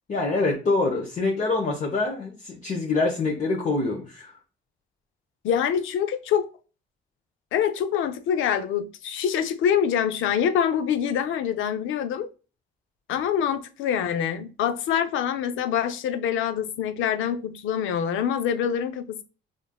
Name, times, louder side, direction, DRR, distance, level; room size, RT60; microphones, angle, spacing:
voice 1, 0.1-4.3, left 3 dB, 40° left, 0.8 m, -25 dB
voice 2, 5.4-6.5 7.5-12.3 13.1-19.2, left 8 dB, 80° left, 0.5 m, -25 dB
5.1 x 2.5 x 2.3 m
cardioid pair, 90°, 20 cm